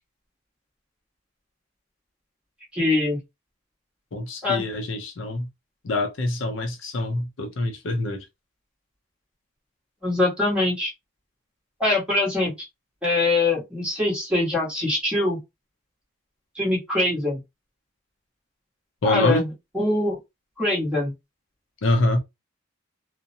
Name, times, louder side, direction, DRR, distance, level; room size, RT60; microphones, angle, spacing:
voice 1, 2.7-3.2 4.4-4.6 10.0-10.9 11.8-12.7 13.0-15.4 16.5-17.4 19.0-19.5 19.7-20.2 20.6-21.1, left 2 dB, 5° right, 1.2 m, -23 dB
voice 2, 4.1-5.5 5.8-8.3 19.0-19.5 21.8-22.2, left 1 dB, 65° left, 0.5 m, -25 dB
2.6 x 2.1 x 2.6 m
head